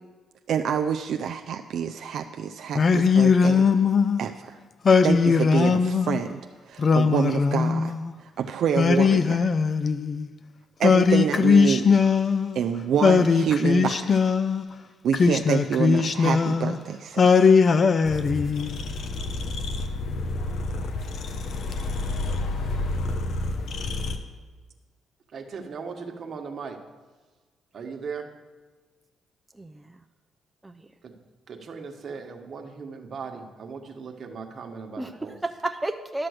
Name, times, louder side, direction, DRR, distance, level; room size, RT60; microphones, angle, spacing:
voice 1, 0.5-3.7 4.2-4.6 5.0-6.4 6.7-7.9 8.2-9.5 10.8-12.0 12.5-14.2 15.0-17.5, right 8 dB, 70° right, 5 dB, 0.4 m, -27 dB
Singing, 2.7-4.2 4.8-6.2 6.8-8.1 8.7-10.3 10.8-12.6 13.0-14.6 15.1-16.8 17.2-18.8, left 5 dB, 45° left, 0.5 m, -20 dB
sound 1, 18.0-24.2, left 2 dB, 65° left, 0.9 m, -30 dB
voice 2, 25.3-26.8 27.7-28.3 31.0-31.1 31.5-35.4, right 5 dB, 50° right, 4 dB, 1.3 m, -38 dB
voice 3, 29.5-30.0 30.6-30.9 35.0-36.3, right 2 dB, 15° right, 6 dB, 0.5 m, -32 dB
11.5 x 6.1 x 6.4 m, 1.4 s
cardioid pair, 90°, 0 cm